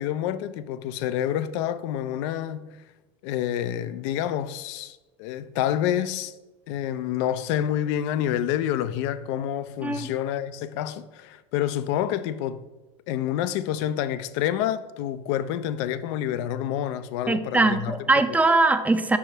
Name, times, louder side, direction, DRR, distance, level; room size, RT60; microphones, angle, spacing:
voice 1, 0.0-2.8 3.2-6.3 6.7-12.6 13.1-18.2, left 11 dB, 70° left, 0.4 m, -28 dB
voice 2, 17.3-19.2, right 3 dB, 10° right, 0.4 m, -21 dB
5.5 x 4.8 x 3.9 m
supercardioid pair, 100°, 15 cm